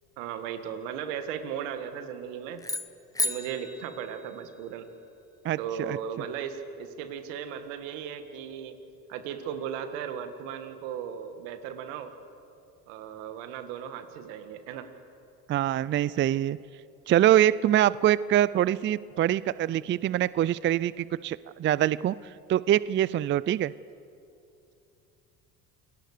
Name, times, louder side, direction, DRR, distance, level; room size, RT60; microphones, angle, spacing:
voice 1, 0.2-2.6 3.2-4.9 5.6-8.7 9.1-12.1 12.9-14.9, right 8 dB, 80° right, 9 dB, 2.0 m, -36 dB
sound 1, 2.6-4.9, left 2 dB, 10° left, 1.1 m, -34 dB
voice 2, 5.4-6.0 15.5-16.6 17.1-23.7, right 12 dB, 30° right, 19 dB, 0.4 m, -24 dB
28.0 x 18.5 x 6.7 m, 2.7 s
supercardioid pair, 85°, 37 cm